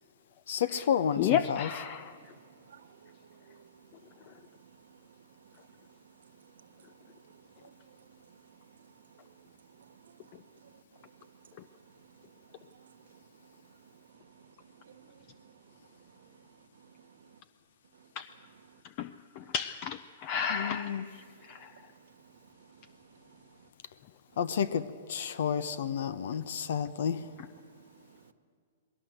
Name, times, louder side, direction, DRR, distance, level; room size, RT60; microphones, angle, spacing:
voice 1, 0.5-1.7 20.5-21.0 24.4-27.3, left 8 dB, 70° left, 1.0 m, -31 dB
voice 2, 1.2-2.2 4.3-4.4 18.2-18.3 19.0-19.1 19.4-21.7 27.4-27.5, left 9 dB, 35° left, 0.5 m, -32 dB
voice 3, 2.3-5.5 6.0-6.7 7.0-8.5 8.8-8.9 9.2-9.5 9.8-10.3 10.6-10.7 11.2-11.3 12.1-13.2 13.5-13.8 14.1-15.5 16.8-17.3 21.2-22.8 23.2-23.5 28.1-28.3, right 7 dB, 85° right, 1.5 m, -59 dB
20.5 x 17.5 x 7.9 m
hypercardioid pair, 155°, 0 cm